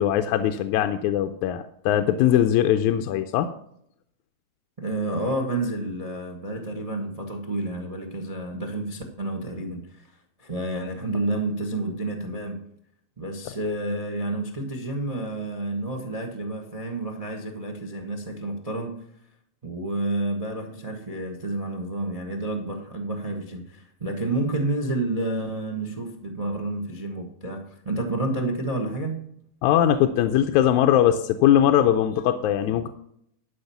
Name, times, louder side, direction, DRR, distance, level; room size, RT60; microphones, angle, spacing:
voice 1, 0.0-3.5 29.6-32.9, left 11 dB, 85° left, 7 dB, 2.0 m, -21 dB
voice 2, 4.8-12.6 13.2-18.9 19.6-29.2, right 2 dB, 50° right, 3 dB, 0.4 m, -30 dB
12.0 x 5.2 x 7.0 m, 0.69 s
omnidirectional pair, 3.4 m